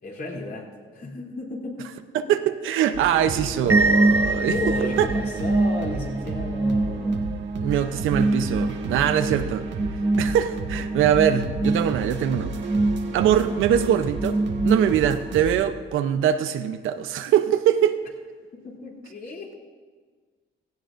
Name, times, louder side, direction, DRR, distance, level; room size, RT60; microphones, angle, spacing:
voice 1, 0.0-1.9 2.2-2.4 2.8-2.9 3.4-3.7 4.5-7.2 18.5-19.5, left 2 dB, 50° left, -2 dB, 3.1 m, -34 dB
voice 2, 2.1-4.5 5.0-5.1 7.6-9.7 10.2-12.5 13.1-14.4 14.6-18.0, right 10 dB, 85° right, 10 dB, 0.7 m, -22 dB
sound 1, 2.9-15.5, right 3 dB, 65° right, 1.4 m, -33 dB
sound 2, 3.7-15.3, right 2 dB, 10° right, 0.5 m, -25 dB
17.0 x 15.0 x 2.6 m, 1.5 s
cardioid pair, 90°, 20 cm